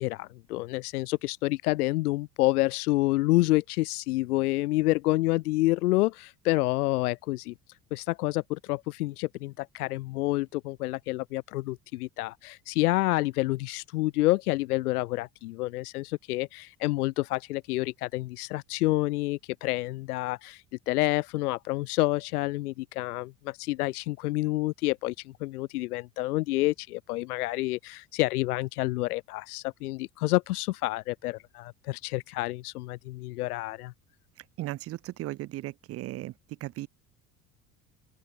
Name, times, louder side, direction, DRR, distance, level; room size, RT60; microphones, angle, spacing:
voice 1, 0.0-7.5 7.9-33.9, left 19 dB, 65° left, 1.2 m, -28 dB
voice 2, 34.6-36.3 36.6-36.9, right 16 dB, 30° right, 0.5 m, -36 dB
open air
figure-of-eight pair, 60°, 47 cm